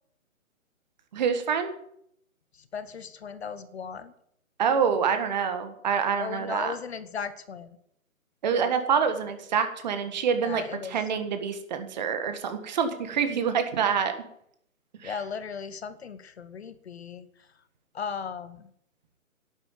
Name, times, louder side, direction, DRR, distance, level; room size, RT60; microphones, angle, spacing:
voice 1, 1.1-1.7 4.6-6.7 8.4-14.1 15.0-15.2, right 7 dB, 30° right, 8 dB, 1.6 m, -26 dB
voice 2, 2.7-4.1 6.2-7.8 10.4-11.0 15.0-17.3 17.9-18.7, left 6 dB, 50° left, 14 dB, 1.2 m, -37 dB
11.5 x 8.9 x 9.7 m, 0.72 s
hypercardioid pair, 155°, 41 cm